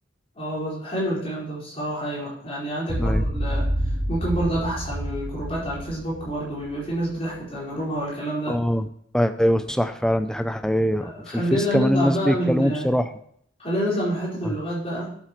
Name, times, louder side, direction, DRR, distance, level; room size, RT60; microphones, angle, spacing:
voice 1, 0.3-3.7 4.1-8.6 11.0-12.9 13.6-15.2, right 1 dB, 30° left, -6 dB, 4.7 m, -28 dB
sound 1, 2.9-7.2, equal, 25° right, 1.5 m, -28 dB
voice 2, 8.5-8.9 9.1-13.0, equal, 5° left, 9 dB, 0.5 m, -22 dB
11.5 x 8.5 x 3.1 m, 0.65 s
head